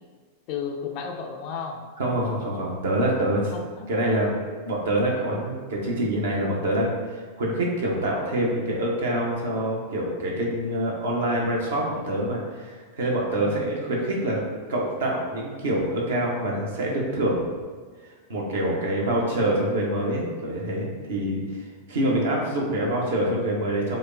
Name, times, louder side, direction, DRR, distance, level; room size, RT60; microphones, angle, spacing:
voice 1, 0.5-1.8 3.5-3.9 13.4-13.7, left 6 dB, 45° left, 4 dB, 0.4 m, -33 dB
voice 2, 2.0-3.5 3.9-4.3 4.6-17.5 18.3-24.0, right 1 dB, 60° right, -2 dB, 0.8 m, -26 dB
4.9 x 2.1 x 2.4 m, 1.5 s
figure-of-eight pair, 90°, 0 cm